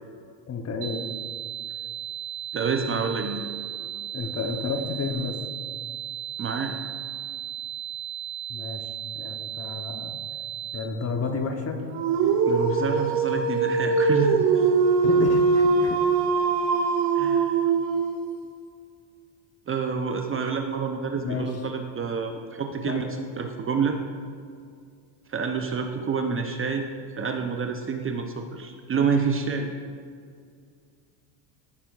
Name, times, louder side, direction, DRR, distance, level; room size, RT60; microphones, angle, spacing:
voice 1, 0.5-1.1 4.1-5.4 8.5-8.9 9.1-10.2 10.7-11.8 14.5-14.7 15.0-16.0 21.2-21.6 22.9-23.1, left 4 dB, 30° left, 5 dB, 0.9 m, -31 dB
sound 1, 0.8-10.8, right 9 dB, 85° right, 0.9 m, -35 dB
voice 2, 2.5-3.4 6.4-6.7 12.5-14.7 17.1-17.7 19.7-24.0 25.3-26.9 27.2-29.7, right 5 dB, 25° right, 5 dB, 0.6 m, -28 dB
Dog, 11.9-18.3, right 4 dB, 60° right, 1.8 m, -22 dB
15.5 x 6.8 x 2.4 m, 2.2 s
supercardioid pair, 105°, 49 cm